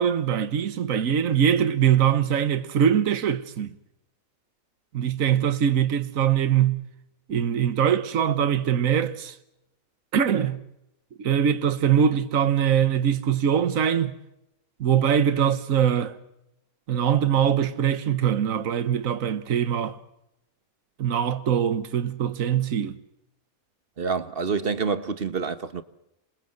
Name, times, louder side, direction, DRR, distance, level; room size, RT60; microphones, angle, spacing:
voice 1, 0.0-3.7 4.9-6.8 7.3-9.4 10.1-10.6 11.2-14.2 14.8-16.1 16.9-20.0 21.0-23.0, right 9 dB, 70° right, 1.6 m, -22 dB
voice 2, 24.0-25.8, right 5 dB, 40° right, 1.4 m, -27 dB
27.5 x 21.5 x 7.8 m
omnidirectional pair, 1.5 m